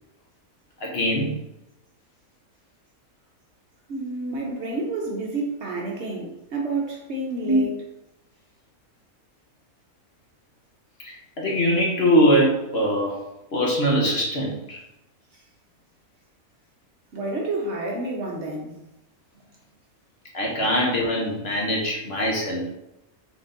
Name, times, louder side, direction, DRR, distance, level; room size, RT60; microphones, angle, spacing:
voice 1, 0.8-1.3 4.4-4.5 7.5-7.6 11.0-13.2 13.5-14.8 20.3-22.7, equal, 50° left, -2 dB, 1.0 m, -22 dB
voice 2, 3.9-7.7 15.3-15.4 17.1-18.8, right 2 dB, 55° right, -1 dB, 0.9 m, -29 dB
3.8 x 3.5 x 3.8 m, 0.89 s
omnidirectional pair, 1.5 m